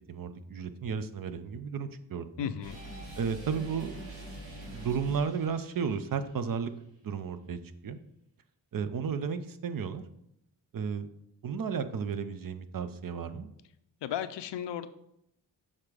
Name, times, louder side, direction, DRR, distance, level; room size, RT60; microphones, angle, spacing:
voice 1, 0.1-2.5 3.2-4.1 4.4-6.7 7.0-8.0 8.7-10.0 10.7-11.1 11.4-13.5, right 6 dB, 55° right, 11 dB, 0.6 m, -33 dB
voice 2, 2.4-2.8 14.0-14.9, left 10 dB, 80° left, 12 dB, 0.6 m, -34 dB
sound 1, 2.6-6.4, right 1 dB, 85° right, 2.7 m, -45 dB
6.5 x 3.6 x 4.9 m, 0.78 s
cardioid pair, 65°, 42 cm